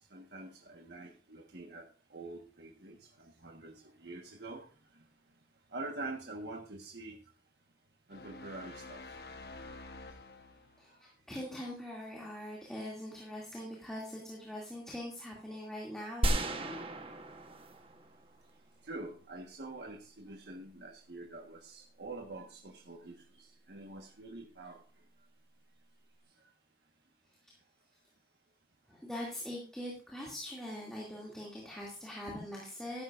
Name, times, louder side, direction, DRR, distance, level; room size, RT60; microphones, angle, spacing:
voice 1, 0.1-4.6 5.7-7.2 8.1-9.0 18.8-24.8, right 2 dB, 70° right, 1 dB, 1.4 m, -46 dB
sound 1, 8.1-10.9, left 3 dB, 60° left, 1.1 m, -49 dB
voice 2, 10.8-16.8 28.9-33.0, left 1 dB, 5° left, -4 dB, 2.5 m, -42 dB
sound 2, 16.2-18.5, right 1 dB, 30° right, 1.1 m, -34 dB
14.0 x 11.0 x 2.5 m, 0.35 s
head